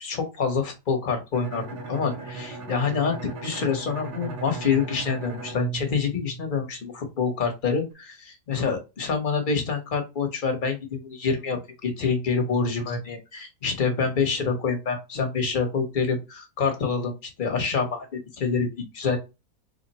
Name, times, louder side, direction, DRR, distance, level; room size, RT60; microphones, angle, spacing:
voice 1, 0.0-18.7 18.9-19.2, left 5 dB, 40° left, 4 dB, 1.0 m, -27 dB
Bowed string instrument, 1.3-7.0, right 3 dB, 60° right, 1.0 m, -37 dB
3.3 x 2.1 x 4.0 m, 0.26 s
omnidirectional pair, 1.6 m